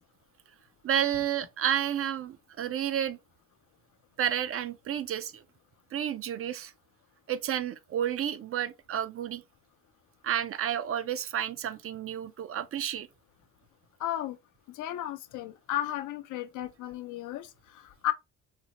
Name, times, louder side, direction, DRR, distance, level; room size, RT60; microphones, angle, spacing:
voice 1, 0.8-3.2 4.2-5.4 5.9-6.7 7.3-9.4 10.2-13.1, right 10 dB, 50° right, 0.4 m, -31 dB
voice 2, 14.0-14.4 14.7-18.1, left 13 dB, 80° left, 0.5 m, -34 dB
4.1 x 2.1 x 2.8 m
cardioid pair, 90°, 30 cm